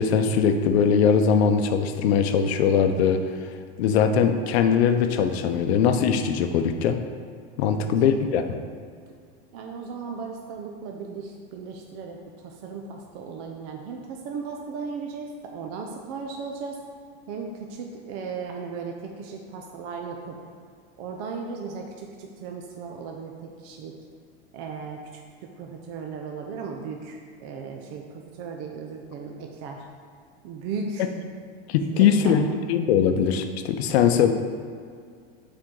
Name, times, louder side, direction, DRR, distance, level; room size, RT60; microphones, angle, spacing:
voice 1, 0.0-3.2 3.8-7.0 7.6-8.5 31.7-34.3, left 7 dB, 75° left, 7 dB, 0.7 m, -21 dB
voice 2, 9.5-16.8 17.3-20.3 21.0-23.3 23.6-23.9 24.5-25.0 25.6-29.9 30.4-31.1 31.9-32.4, right 5 dB, 35° right, 2 dB, 0.5 m, -36 dB
7.5 x 4.4 x 3.7 m, 2.1 s
supercardioid pair, 165°, 32 cm